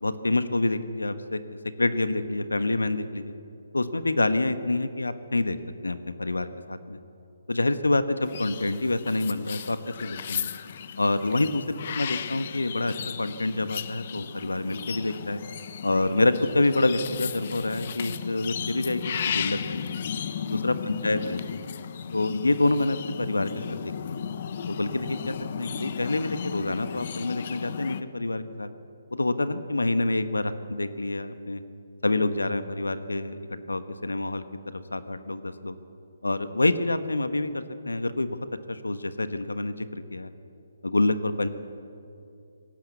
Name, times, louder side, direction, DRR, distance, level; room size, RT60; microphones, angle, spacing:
voice 1, 0.0-1.4 1.8-3.3 3.7-5.6 5.8-7.0 7.5-10.5 11.0-15.4 15.8-19.8 20.5-21.6 22.1-24.2 24.7-28.7 29.1-31.6 32.0-33.4 33.7-34.4 34.7-35.7 36.2-38.4 38.7-40.3 40.8-41.5, left 2 dB, 90° left, 11 dB, 1.3 m, -27 dB
sound 1, 8.2-28.0, left 8 dB, 45° left, 0.9 m, -35 dB
20.0 x 17.0 x 8.3 m, 2.6 s
figure-of-eight pair, 145°, 0 cm